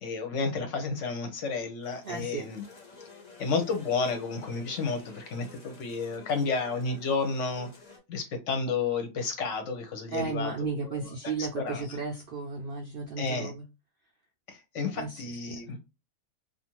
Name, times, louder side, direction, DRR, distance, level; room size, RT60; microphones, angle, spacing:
voice 1, 0.0-2.6 3.4-7.7 8.1-11.1 11.4-12.0 13.2-13.5 14.5-15.8, left 4 dB, 65° left, 0.9 m, -31 dB
sound 1, 1.8-8.0, left 4 dB, 45° left, 0.6 m, -51 dB
voice 2, 2.0-2.4 10.1-13.6 14.9-15.2 15.5-15.6, right 4 dB, 80° right, 0.5 m, -34 dB
2.5 x 2.3 x 2.9 m
omnidirectional pair, 1.5 m